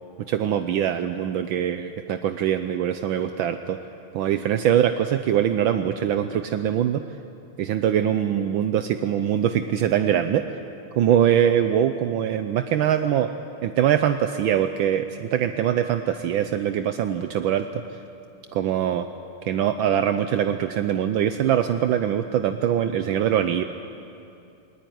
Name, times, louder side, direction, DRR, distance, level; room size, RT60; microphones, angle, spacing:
voice 1, 0.3-3.8 4.1-7.0 7.6-10.6 10.9-13.3 13.6-17.8 18.5-19.1 19.4-23.6, right 10 dB, 75° right, 8 dB, 1.4 m, -23 dB
19.5 x 19.0 x 9.4 m, 2.6 s
omnidirectional pair, 2.3 m